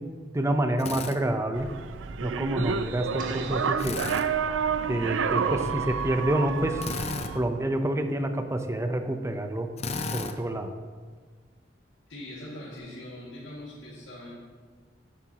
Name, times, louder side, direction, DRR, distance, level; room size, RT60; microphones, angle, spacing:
voice 1, 0.3-1.7 2.2-4.0 4.9-6.9 7.3-9.7 10.1-10.7, right 1 dB, 15° right, 6 dB, 0.6 m, -28 dB
Drill, 0.8-1.2 3.8-4.3 6.8-7.3 9.8-10.4, left 4 dB, 35° left, 0.5 m, -33 dB
sound 1, 1.5-7.4, right 6 dB, 80° right, 0.4 m, -29 dB
sound 2, 3.2-5.1, right 2 dB, 45° right, 1.3 m, -44 dB
voice 2, 12.1-14.3, left 1 dB, 85° left, -8 dB, 2.1 m, -41 dB
11.0 x 9.7 x 2.9 m, 1.5 s
head